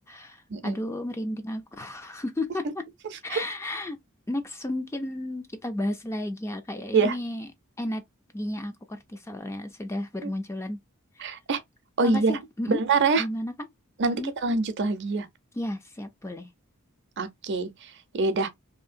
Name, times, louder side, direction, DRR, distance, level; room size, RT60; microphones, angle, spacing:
voice 1, 0.1-2.8 3.2-4.0 4.3-7.5 7.8-8.0 8.3-10.8 11.2-11.3 12.0-12.8 13.2-13.5 14.0-14.3 15.5-16.5, left 1 dB, 10° left, 0.3 m, -33 dB
voice 2, 11.2-11.6 12.0-12.4 12.7-13.2 14.0-14.2 14.4-15.3 17.2-17.7 18.1-18.5, right 3 dB, 50° right, 0.5 m, -24 dB
2.7 x 2.7 x 2.4 m
head